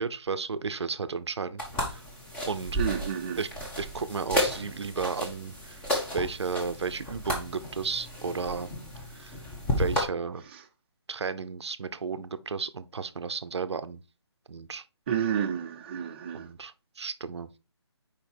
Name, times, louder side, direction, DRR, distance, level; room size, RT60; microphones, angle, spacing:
voice 1, 0.0-2.0 2.5-2.8 3.4-3.5 3.8-5.8 6.1-8.7 9.1-9.4 9.8-10.4 11.1-14.0 14.5-14.8 16.3-17.5, right 5 dB, 70° right, 0.7 m, -33 dB
sound 1, 1.6-10.0, left 1 dB, 5° left, 1.1 m, -33 dB
voice 2, 2.7-3.4 10.5-10.6 15.1-16.5, right 8 dB, 20° right, 0.7 m, -30 dB
5.1 x 4.9 x 4.4 m
hypercardioid pair, 160°, 15 cm